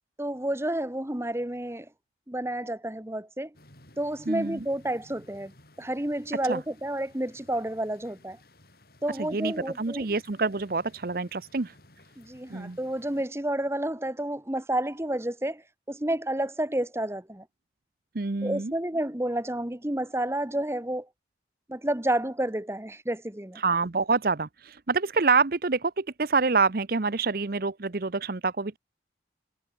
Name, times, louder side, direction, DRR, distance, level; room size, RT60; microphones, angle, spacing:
voice 1, 0.2-1.9 2.3-3.5 4.0-5.5 5.8-8.4 9.0-10.1 12.2-17.5 18.4-21.1 21.7-23.6, right 1 dB, 15° right, 1.1 m, -30 dB
sound 1, 3.5-13.3, left 1 dB, 55° left, 6.6 m, -57 dB
voice 2, 4.3-4.6 6.5-6.6 9.2-11.7 12.5-12.8 18.1-18.7 23.6-28.8, right 4 dB, 55° right, 0.8 m, -27 dB
head